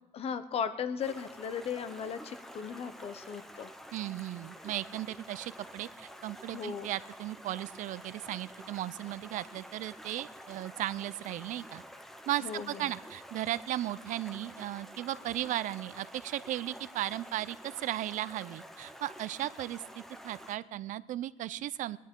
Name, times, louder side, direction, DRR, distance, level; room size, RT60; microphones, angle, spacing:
voice 1, 0.1-3.7 6.5-6.9 12.4-12.9, left 7 dB, 50° left, 12 dB, 0.8 m, -37 dB
Stream, 1.0-20.6, equal, 5° left, 0.8 m, -49 dB
voice 2, 3.9-11.8 12.3-22.0, right 14 dB, 75° right, 17 dB, 0.5 m, -36 dB
20.0 x 10.0 x 3.7 m, 0.98 s
cardioid pair, 150°, 13 cm